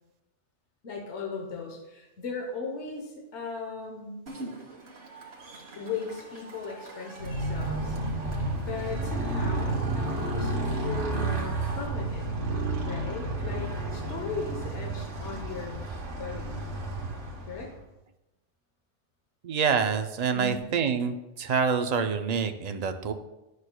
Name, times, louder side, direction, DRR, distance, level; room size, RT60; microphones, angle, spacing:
voice 1, 0.8-4.2 5.8-8.0 8.6-12.4 12.8-15.8 16.2-16.6 17.5-17.7 20.3-20.6, left 4 dB, 75° left, 0 dB, 1.3 m, -37 dB
Cheering / Crowd, 4.3-11.9, right 2 dB, 65° right, 1.6 m, -44 dB
Motorcycle, 7.2-17.8, right 2 dB, 85° right, 1.4 m, -31 dB
voice 2, 19.4-23.1, right 6 dB, 50° right, 7 dB, 0.5 m, -27 dB
11.0 x 6.4 x 2.2 m, 0.98 s
omnidirectional pair, 1.2 m